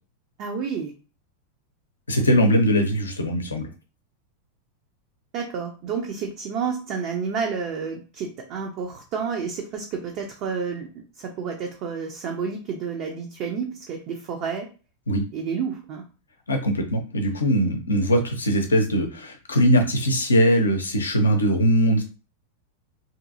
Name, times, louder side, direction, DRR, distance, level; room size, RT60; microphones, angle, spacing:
voice 1, 0.4-0.9 5.3-10.9 11.2-14.7 15.3-16.0, right 6 dB, 40° right, 1 dB, 0.5 m, -30 dB
voice 2, 2.1-3.7 15.1-15.2 16.5-22.0, equal, 75° left, 5 dB, 0.6 m, -21 dB
2.7 x 2.6 x 2.5 m, 0.34 s
figure-of-eight pair, 90°, 0 cm